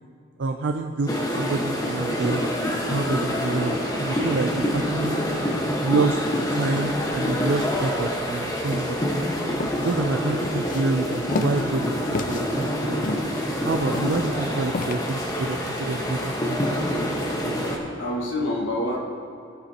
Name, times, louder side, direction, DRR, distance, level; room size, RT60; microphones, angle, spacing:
voice 1, 0.4-1.1 1.4-2.5 2.9-5.2 5.8-6.2 6.5-9.0 9.8-13.0 13.6-16.7, right 3 dB, 70° right, 4 dB, 0.5 m, -27 dB
sound 1, 1.1-17.8, equal, 20° left, 1.3 m, -26 dB
sound 2, 9.5-14.9, left 2 dB, 45° left, 0.5 m, -32 dB
voice 2, 17.6-19.0, left 1 dB, 85° left, -1 dB, 1.6 m, -28 dB
16.5 x 8.3 x 2.9 m, 2.6 s
head